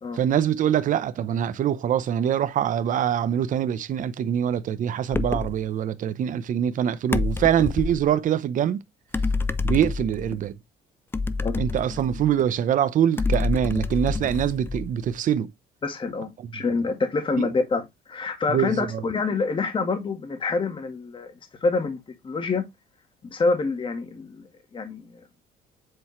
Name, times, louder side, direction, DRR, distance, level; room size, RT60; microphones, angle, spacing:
voice 1, 0.1-8.8 9.6-10.5 11.6-15.5 17.4-17.5 18.5-19.0, right 9 dB, 50° right, 0.7 m, -24 dB
sound 1, 5.1-5.6 7.1-8.1 9.1-10.4 11.1-12.5 13.2-15.1, left 3 dB, 15° left, 0.4 m, -27 dB
voice 2, 15.8-21.3 21.6-22.6 23.3-25.2, left 4 dB, 30° left, 1.6 m, -27 dB
7.8 x 4.3 x 3.1 m
cardioid pair, 110°, 17 cm